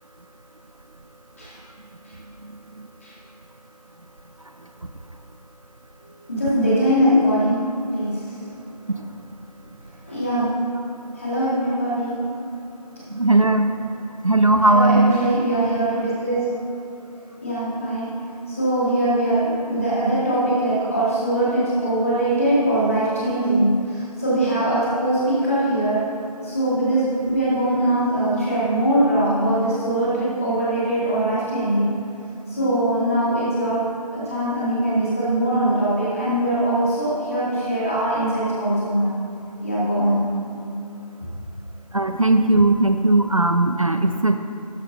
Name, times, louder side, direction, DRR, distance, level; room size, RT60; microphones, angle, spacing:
voice 1, 6.3-7.7 7.9-8.3 8.9-9.0 10.0-10.5 11.2-12.2 14.7-16.5 17.4-18.2 18.5-26.0 26.4-31.9 32.5-33.9 34.1-39.1 39.6-40.2, right 1 dB, 20° left, -9 dB, 2.4 m, -21 dB
voice 2, 13.1-13.7 14.2-15.2 41.9-44.4, right 2 dB, 55° right, 7 dB, 0.5 m, -17 dB
13.0 x 9.6 x 2.7 m, 2.6 s
figure-of-eight pair, 170°, 21 cm